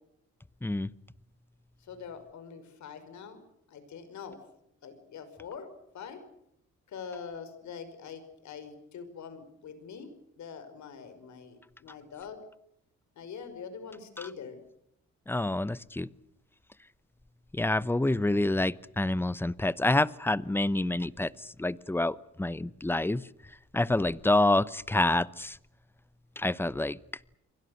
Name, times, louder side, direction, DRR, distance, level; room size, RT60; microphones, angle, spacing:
voice 1, 1.8-4.4 4.8-5.7 5.9-6.2 6.9-10.1 10.4-12.4 13.2-14.6, left 6 dB, 70° left, 5.5 m, -44 dB
voice 2, 15.3-16.1 17.5-23.2 23.7-25.6 26.4-27.0, left 2 dB, 5° left, 0.9 m, -27 dB
29.5 x 23.5 x 6.6 m
cardioid pair, 90°, 30 cm